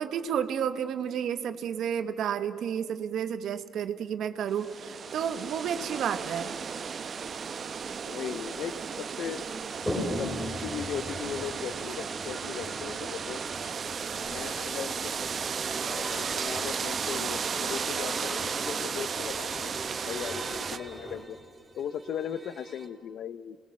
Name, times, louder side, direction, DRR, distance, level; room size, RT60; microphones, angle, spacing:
voice 1, 0.0-6.5, right 8 dB, 75° right, 10 dB, 1.2 m, -31 dB
sound 1, 4.5-20.8, right 6 dB, 50° right, 0.9 m, -34 dB
voice 2, 8.1-8.7 9.2-9.4 10.0-10.3 10.6-13.4 14.2-14.9 15.8-21.4 21.8-23.6, left 9 dB, 70° left, 16 dB, 0.7 m, -38 dB
Toilet flush, 9.7-21.2, left 1 dB, 10° left, 4.1 m, -41 dB
sound 2, 14.9-22.9, right 3 dB, 25° right, 3.6 m, -44 dB
28.0 x 20.0 x 7.4 m, 2.2 s
cardioid pair, 90°, 0 cm